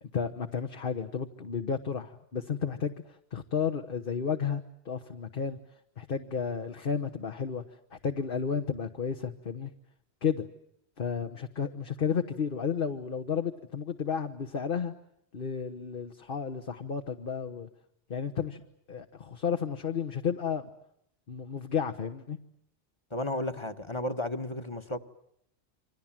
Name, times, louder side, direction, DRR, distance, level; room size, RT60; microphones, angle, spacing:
voice 1, 0.0-5.6 6.0-7.6 7.9-9.7 10.2-10.4 11.0-14.9 15.3-17.7 18.1-18.6 18.9-20.7 21.3-22.4, left 6 dB, 55° left, 1.4 m, -32 dB
voice 2, 23.1-25.0, left 1 dB, 25° left, 1.4 m, -33 dB
28.5 x 25.0 x 7.5 m
omnidirectional pair, 1.1 m